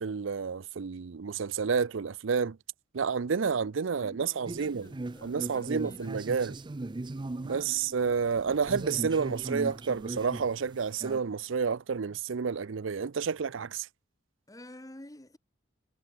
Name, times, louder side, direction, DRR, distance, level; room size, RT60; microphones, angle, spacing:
voice 1, 0.0-2.6 2.9-4.9 5.2-6.6 7.4-13.9, right 6 dB, 70° right, 0.5 m, -30 dB
voice 2, 3.4-6.1 7.4-7.7 14.5-15.4, left 1 dB, 20° left, 1.3 m, -50 dB
sound 1, 4.4-11.2, right 2 dB, 25° right, 0.4 m, -39 dB
head